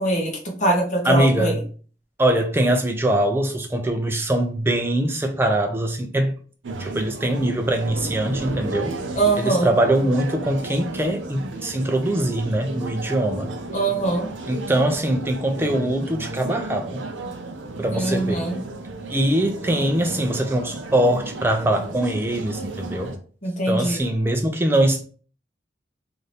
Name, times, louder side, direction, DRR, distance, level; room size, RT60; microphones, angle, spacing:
voice 1, 0.0-1.6 9.1-9.7 13.7-14.3 17.9-18.6 23.4-24.0, right 2 dB, 40° left, 0.9 m, -22 dB
voice 2, 1.0-1.6 2.2-6.4 6.8-9.0 9.4-13.5 14.5-17.0 17.8-18.5 19.1-23.1 23.7-25.0, right 1 dB, 10° right, 0.3 m, -22 dB
sound 1, 6.6-23.2, right 2 dB, 85° right, 0.5 m, -34 dB
2.7 x 2.5 x 3.2 m
head